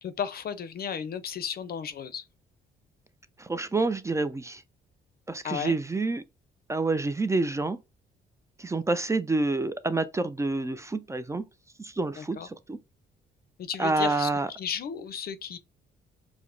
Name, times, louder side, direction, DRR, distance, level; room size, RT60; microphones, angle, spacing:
voice 1, 0.0-2.2 5.4-5.8 12.2-12.5 13.6-14.3 14.6-15.6, left 8 dB, 50° left, 0.5 m, -34 dB
voice 2, 3.4-4.6 5.3-6.2 6.7-7.8 8.6-11.4 11.8-12.8 13.8-14.5, right 3 dB, 15° right, 0.3 m, -28 dB
4.7 x 2.0 x 2.5 m
cardioid pair, 90°, 20 cm